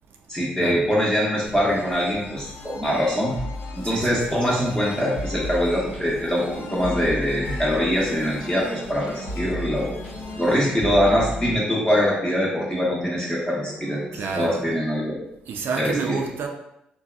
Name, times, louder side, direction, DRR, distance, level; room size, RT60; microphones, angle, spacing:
voice 1, 0.3-3.4 3.7-6.4 6.7-9.9 10.4-15.2 15.8-16.2, equal, 15° left, -5 dB, 0.8 m, -23 dB
sound 1, 1.4-12.0, left 2 dB, 65° left, 0.4 m, -42 dB
sound 2, 3.4-11.6, left 1 dB, 90° left, 0.9 m, -34 dB
voice 2, 3.8-4.2 14.1-14.6 15.5-16.5, right 5 dB, 65° right, 3 dB, 0.4 m, -29 dB
sound 3, 6.4-14.8, equal, 15° right, 0.6 m, -39 dB
2.7 x 2.2 x 2.3 m, 0.82 s
hypercardioid pair, 50°, 4 cm